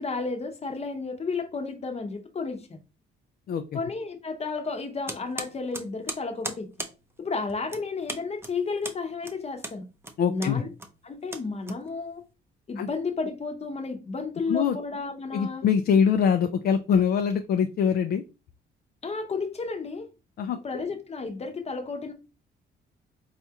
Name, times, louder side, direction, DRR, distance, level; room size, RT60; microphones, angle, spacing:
voice 1, 0.0-2.8 3.7-6.7 7.2-9.9 10.3-10.7 11.0-12.2 12.7-15.6 19.0-20.1 20.6-22.1, left 4 dB, 30° left, 0.9 m, -32 dB
voice 2, 3.5-3.8 10.2-10.6 12.8-12.9 14.5-14.8 15.3-18.2 20.4-20.6, left 7 dB, 50° left, 0.4 m, -23 dB
sound 1, 5.1-12.3, right 2 dB, 10° right, 0.6 m, -39 dB
4.1 x 2.4 x 2.8 m
cardioid pair, 90°, 20 cm